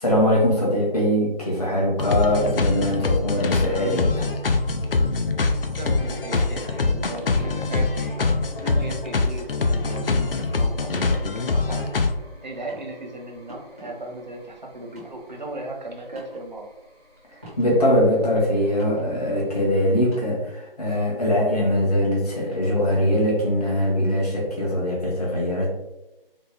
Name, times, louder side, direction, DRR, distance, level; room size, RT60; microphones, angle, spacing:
voice 1, 0.0-4.3 17.6-25.7, equal, 40° left, -4 dB, 1.0 m, -22 dB
sound 1, 2.0-12.1, left 3 dB, 70° left, 0.5 m, -24 dB
sound 2, 4.4-20.2, left 2 dB, 85° left, 1.4 m, -41 dB
voice 2, 5.8-8.3 8.6-11.9 12.4-16.7, right 2 dB, 50° right, 1 dB, 0.8 m, -36 dB
sound 3, 6.3-7.0 7.4-7.6 8.6-8.8 9.8-10.1 11.1-11.3 11.8-12.2 12.6-12.9 13.5-13.9 14.8-15.1 16.1-16.4 17.4-17.7 18.0-18.1 18.6-19.1 20.0-20.2 21.3-21.4 22.5-22.7 23.6-23.8, equal, 15° right, 0.7 m, -43 dB
4.1 x 2.0 x 3.4 m, 0.95 s
figure-of-eight pair, 160°, 29 cm